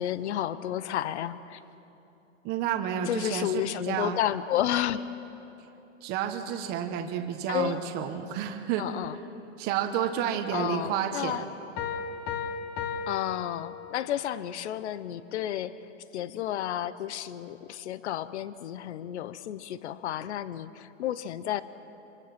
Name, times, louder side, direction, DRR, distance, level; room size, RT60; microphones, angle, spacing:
voice 1, 0.0-1.6 3.1-5.0 7.5-7.8 8.8-9.2 10.5-11.4 13.1-15.8 16.1-21.6, left 11 dB, 60° left, 15 dB, 0.9 m, -31 dB
voice 2, 2.4-4.2 6.0-8.8 9.6-11.4, right 9 dB, 25° right, 4 dB, 1.3 m, -30 dB
Piano, 11.8-14.3, left 6 dB, 25° left, 1.7 m, -35 dB
25.0 x 24.5 x 6.0 m, 2.9 s
hypercardioid pair, 155°, 39 cm